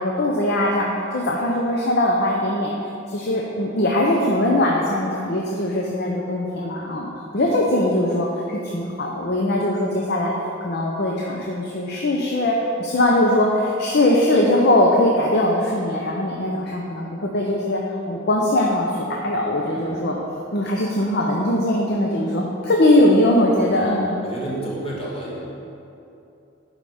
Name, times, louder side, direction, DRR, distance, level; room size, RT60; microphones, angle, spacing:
voice 1, 0.0-2.7 3.1-10.3 10.6-20.2 20.5-24.2, left 1 dB, 60° left, -1 dB, 0.8 m, -21 dB
voice 2, 24.2-25.4, right 1 dB, 30° left, -6 dB, 2.2 m, -31 dB
11.0 x 5.0 x 5.0 m, 2.8 s
head